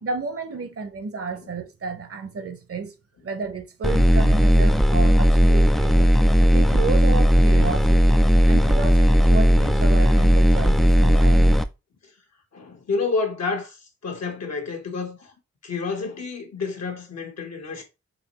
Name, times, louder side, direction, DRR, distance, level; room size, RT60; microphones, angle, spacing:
voice 1, 0.0-2.9 3.2-6.2 6.5-11.6, right 4 dB, 50° right, 0.9 m, -32 dB
sound 1, 3.8-11.6, equal, ahead, 0.3 m, -16 dB
voice 2, 12.5-15.3 15.6-17.8, left 4 dB, 60° left, 1.3 m, -29 dB
4.0 x 3.0 x 3.0 m
supercardioid pair, 40°, 29 cm